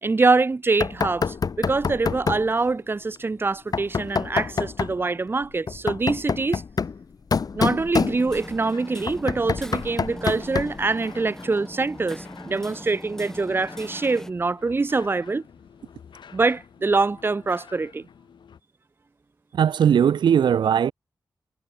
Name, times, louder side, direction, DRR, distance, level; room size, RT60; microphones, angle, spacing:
voice 1, 0.0-6.6 7.5-15.4 16.3-18.1, right 3 dB, 30° right, 0.5 m, -24 dB
Knock, 0.8-2.5 3.7-5.0 5.7-8.6 9.1-10.9, left 5 dB, 55° left, 0.8 m, -27 dB
Hammer, 8.2-14.3, left 1 dB, 5° left, 1.2 m, -40 dB
sound 1, 8.3-18.6, left 7 dB, 85° left, 5.4 m, -49 dB
voice 2, 19.5-20.9, right 8 dB, 85° right, 0.6 m, -19 dB
cardioid pair, 65°, 8 cm